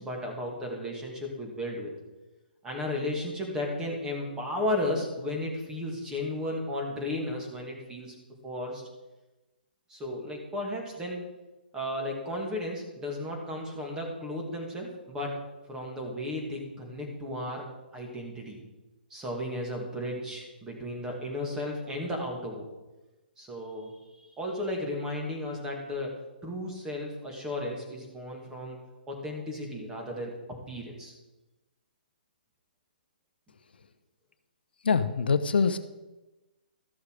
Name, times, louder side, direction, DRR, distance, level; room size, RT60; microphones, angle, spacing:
voice 1, 0.0-1.9 2.6-8.1 8.4-8.9 9.9-11.2 11.7-15.4 15.7-17.6 17.9-18.6 19.1-22.7 23.4-26.1 26.4-28.8 29.1-30.3 30.7-31.1, left 1 dB, 10° right, 0 dB, 2.4 m, -34 dB
voice 2, 34.8-35.8, left 5 dB, 80° left, 11 dB, 0.7 m, -24 dB
13.5 x 6.5 x 4.9 m, 1.1 s
hypercardioid pair, 140°, 5 cm